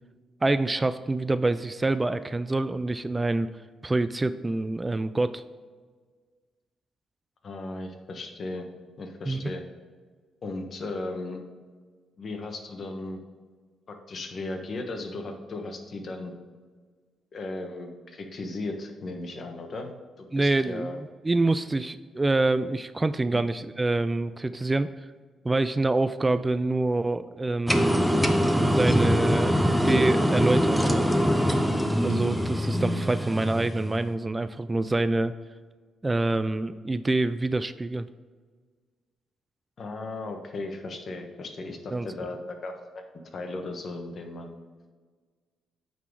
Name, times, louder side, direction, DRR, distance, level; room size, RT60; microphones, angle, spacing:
voice 1, 0.4-3.5 3.8-5.4 9.3-9.5 20.3-24.9 25.4-28.2 28.7-31.1 32.0-35.3 36.0-38.1 41.9-42.1, right 2 dB, 20° right, 13 dB, 0.3 m, -26 dB
voice 2, 7.4-8.7 9.0-9.6 10.4-11.4 12.2-13.2 13.9-16.3 17.3-19.9 20.2-21.0 39.8-44.6, left 2 dB, 50° left, 4 dB, 1.3 m, -36 dB
sound 1, 27.7-34.0, equal, ahead, 0.8 m, -23 dB
8.9 x 4.1 x 4.7 m, 1.5 s
cardioid pair, 70°, 0 cm